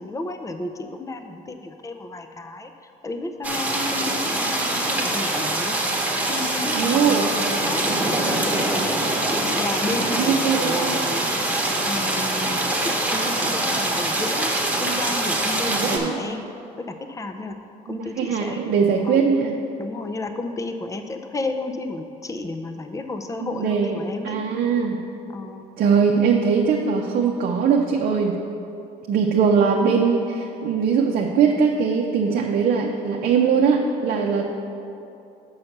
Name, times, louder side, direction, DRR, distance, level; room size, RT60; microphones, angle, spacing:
voice 1, 0.0-2.7 3.0-5.8 6.3-8.4 9.3-16.4 16.8-17.6 17.8-18.7 19.0-19.2 19.8-24.4 25.3-25.6, left 2 dB, 20° left, 7 dB, 0.5 m, -32 dB
sound 1, 3.4-16.0, right 1 dB, 10° right, 1.2 m, -24 dB
voice 2, 6.7-7.3 10.2-11.0 15.7-16.2 17.9-19.6 23.4-24.0 24.2-25.1 25.8-28.4 29.1-34.5, right 6 dB, 60° right, 0 dB, 0.6 m, -21 dB
5.8 x 5.6 x 6.5 m, 2.7 s
cardioid pair, 110°, 17 cm